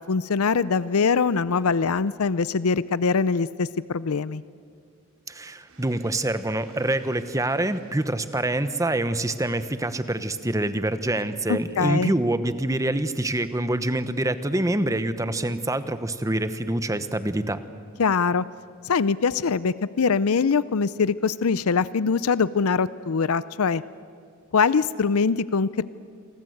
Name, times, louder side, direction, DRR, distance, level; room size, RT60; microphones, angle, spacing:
voice 1, 0.0-4.4 11.5-12.2 18.0-18.4 18.8-23.8 24.5-25.8, left 5 dB, 85° left, 17 dB, 0.6 m, -23 dB
voice 2, 5.3-17.6, right 1 dB, 15° right, 11 dB, 1.0 m, -26 dB
sound 1, 5.7-12.1, right 2 dB, 80° right, 5.9 m, -56 dB
28.5 x 23.5 x 7.9 m, 2.3 s
head